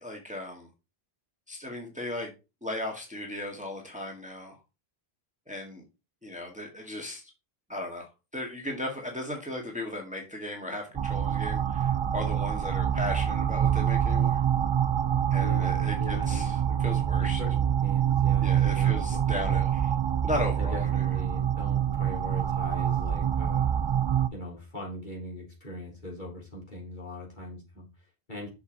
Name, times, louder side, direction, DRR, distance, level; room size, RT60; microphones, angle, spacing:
voice 1, 0.0-0.7 1.5-2.3 2.6-4.6 5.5-5.8 6.2-7.3 7.7-14.4 15.3-17.4 18.4-19.8 20.2-20.9, left 1 dB, 5° right, 1.8 m, -36 dB
sound 1, 11.0-24.3, right 9 dB, 50° right, 0.3 m, -26 dB
voice 2, 15.3-16.6 17.2-19.6 20.6-23.7 24.3-28.5, left 1 dB, 50° left, 3.8 m, -41 dB
6.9 x 6.6 x 4.0 m
omnidirectional pair, 1.1 m